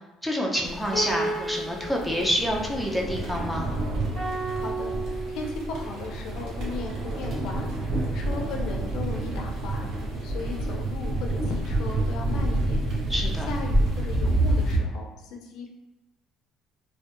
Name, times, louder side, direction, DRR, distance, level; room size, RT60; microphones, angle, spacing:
voice 1, 0.2-3.7 13.1-13.5, equal, ahead, -1 dB, 0.4 m, -27 dB
sound 1, 0.6-14.8, right 1 dB, 60° right, 0.7 m, -28 dB
Piano, 0.9-4.2, right 1 dB, 20° left, 1.5 m, -35 dB
sound 2, 4.1-6.5, right 4 dB, 40° right, 1.0 m, -35 dB
voice 2, 4.5-9.9 10.2-12.8 13.5-15.7, left 4 dB, 75° left, 2 dB, 0.4 m, -37 dB
2.5 x 2.1 x 2.4 m, 1.0 s
cardioid pair, 120°, 0 cm